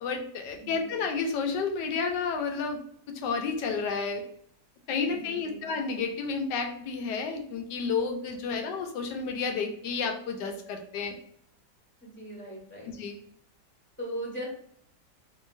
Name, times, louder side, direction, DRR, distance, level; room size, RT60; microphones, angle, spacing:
voice 1, 0.0-2.8 3.1-4.2 4.9-11.1 12.9-13.2, left 5 dB, 85° left, 4 dB, 1.3 m, -31 dB
voice 2, 0.6-1.1 5.0-5.7 8.5-8.6 12.0-12.9 14.0-14.5, right 1 dB, 5° left, -4 dB, 1.2 m, -40 dB
3.7 x 3.3 x 2.5 m, 0.64 s
omnidirectional pair, 1.9 m